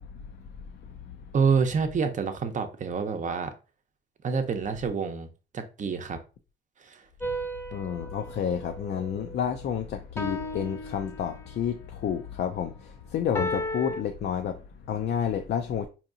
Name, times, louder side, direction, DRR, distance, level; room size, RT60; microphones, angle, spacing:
voice 1, 0.0-1.2 7.7-15.9, left 8 dB, 60° left, 0.5 m, -31 dB
voice 2, 1.3-3.5 4.2-5.3 5.5-6.2 6.8-7.0, right 5 dB, 40° right, 0.7 m, -27 dB
sound 1, 7.2-9.6 10.2-11.7 13.3-14.0, equal, 10° left, 0.8 m, -35 dB
4.6 x 2.8 x 2.6 m
cardioid pair, 90°, 20 cm